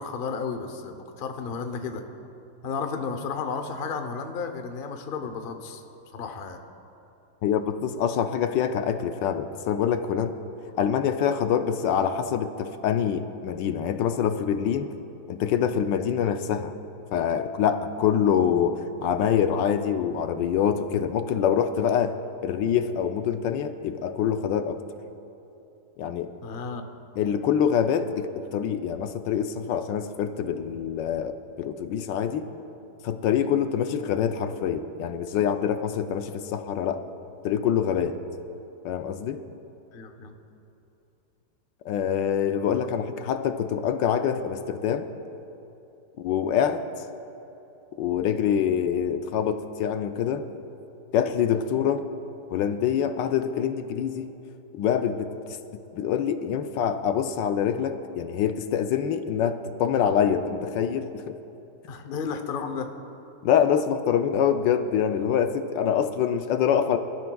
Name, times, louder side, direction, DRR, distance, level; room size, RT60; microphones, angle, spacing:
voice 1, 0.0-2.0 2.6-5.8 6.1-6.6 26.4-26.8 39.9-40.3 61.9-62.9, left 5 dB, 50° left, 6 dB, 0.7 m, -33 dB
voice 2, 7.4-10.3 10.8-14.9 15.3-16.7 17.1-22.2 22.4-24.8 26.0-26.3 27.2-32.4 33.0-37.0 37.4-38.2 38.8-39.4 41.8-45.1 46.2-46.8 48.0-50.5 51.1-52.1 52.5-54.3 54.7-55.6 55.9-61.4 63.4-67.0, left 8 dB, 80° left, 8 dB, 1.3 m, -25 dB
26.0 x 13.0 x 2.3 m, 2.9 s
omnidirectional pair, 2.0 m